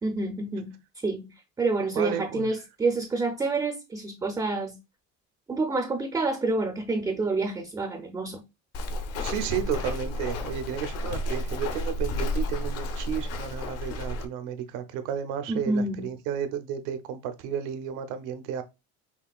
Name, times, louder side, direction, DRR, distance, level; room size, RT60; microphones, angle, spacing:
voice 1, 0.0-0.8 1.0-4.8 5.5-8.4 15.5-16.1, right 3 dB, 10° right, 0.3 m, -28 dB
voice 2, 1.9-2.5 9.2-18.6, right 8 dB, 85° right, 0.8 m, -32 dB
Walk footsteps, 8.7-14.2, left 2 dB, 50° left, 0.7 m, -31 dB
5.7 x 2.4 x 2.3 m
cardioid pair, 155°, 31 cm